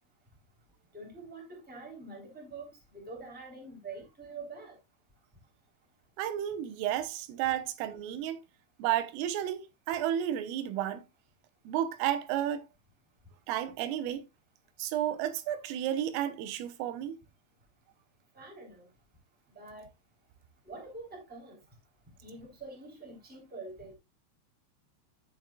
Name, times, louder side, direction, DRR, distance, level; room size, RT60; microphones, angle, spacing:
voice 1, 0.9-4.8 18.3-18.9 19.5-19.9 20.6-21.6 22.2-23.9, right 3 dB, 5° right, 2.1 m, -45 dB
voice 2, 6.2-8.4 8.8-11.0 11.7-12.7 13.5-14.2 14.8-17.2, right 11 dB, 90° right, 3.5 m, -32 dB
14.5 x 6.0 x 2.3 m
omnidirectional pair, 5.7 m